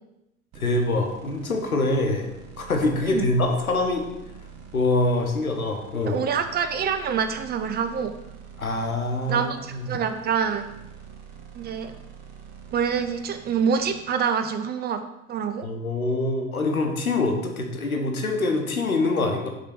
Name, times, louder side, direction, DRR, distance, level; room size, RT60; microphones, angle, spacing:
voice 1, 0.5-4.0 4.7-6.2 8.6-9.9 15.6-19.5, left 2 dB, 85° left, 3 dB, 1.0 m, -25 dB
sound 1, 0.5-14.0, right 6 dB, 40° right, 1.1 m, -46 dB
voice 2, 6.1-8.1 9.3-10.7 11.6-11.9 12.7-15.0 15.3-15.7, right 7 dB, 25° right, 9 dB, 0.5 m, -26 dB
6.5 x 3.9 x 5.9 m, 0.88 s
figure-of-eight pair, 70°, 42 cm